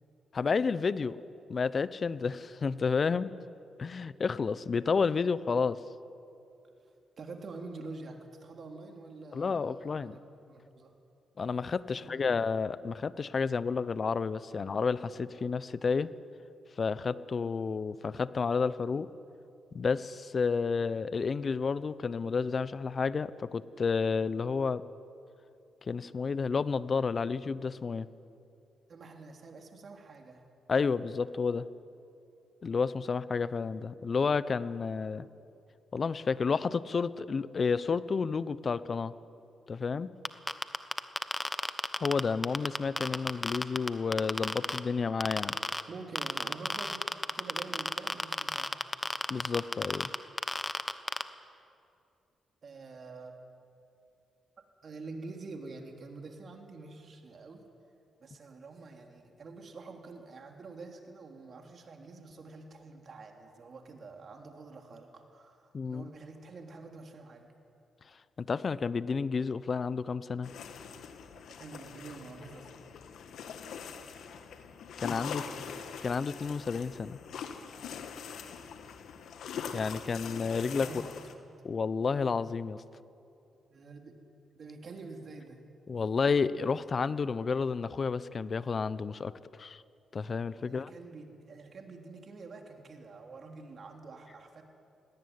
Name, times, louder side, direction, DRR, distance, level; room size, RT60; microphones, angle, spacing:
voice 1, 0.3-1.2 1.5-3.3 3.8-5.8 9.3-10.2 11.4-16.1 16.8-19.1 19.7-24.8 25.8-28.1 30.7-31.7 32.6-35.3 35.9-39.1 39.7-40.1 42.0-45.6 49.3-50.1 65.7-66.1 68.4-70.5 75.0-75.4 76.0-77.2 79.7-80.9 81.6-82.8 85.9-89.8 90.1-90.9, left 5 dB, 50° left, 17 dB, 0.8 m, -31 dB
voice 2, 6.8-10.2 10.5-10.9 11.9-12.3 28.9-30.5 45.9-48.9 52.6-53.4 54.8-57.6 58.2-67.5 71.3-72.7 75.2-75.7 80.8-81.2 83.7-84.2 84.5-85.6 90.6-94.6, right 3 dB, 55° right, 3 dB, 3.3 m, -47 dB
sound 1, 40.2-44.8 45.2-45.8 46.1-51.2, left 2 dB, 15° left, 1.2 m, -31 dB
sound 2, 70.4-81.4, left 7 dB, 75° left, 1.5 m, -43 dB
18.0 x 18.0 x 9.7 m, 2.6 s
supercardioid pair, 55°, 0 cm